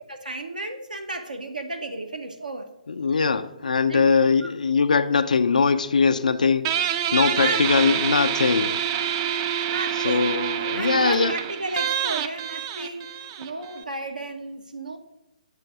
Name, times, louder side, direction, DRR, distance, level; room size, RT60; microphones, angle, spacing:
voice 1, 0.1-2.7 3.9-4.1 4.4-4.5 7.1-8.1 9.7-15.0, right 2 dB, 85° right, 0.6 m, -33 dB
voice 2, 2.9-8.8 10.0-11.3, left 5 dB, 70° left, 0.4 m, -21 dB
Guitar, 6.6-13.8, right 9 dB, 30° right, 0.3 m, -27 dB
7.6 x 2.6 x 5.8 m
figure-of-eight pair, 130°, 4 cm